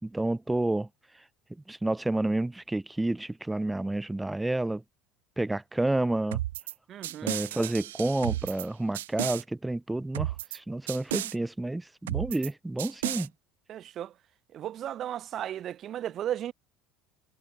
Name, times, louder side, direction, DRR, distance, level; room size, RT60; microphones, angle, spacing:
voice 1, 0.0-0.9 1.7-4.8 5.4-6.4 7.2-13.3, right 2 dB, 10° right, 2.9 m, -30 dB
sound 1, 6.3-6.7 7.0-8.7 8.9-9.4 10.1-10.6 10.9-11.3 12.1-12.5 12.8-13.3, right 14 dB, 80° right, 5.0 m, -33 dB
voice 2, 6.9-7.4 13.1-13.2 13.7-14.1 14.5-16.5, right 11 dB, 50° right, 1.7 m, -35 dB
hypercardioid pair, 75°, 0 cm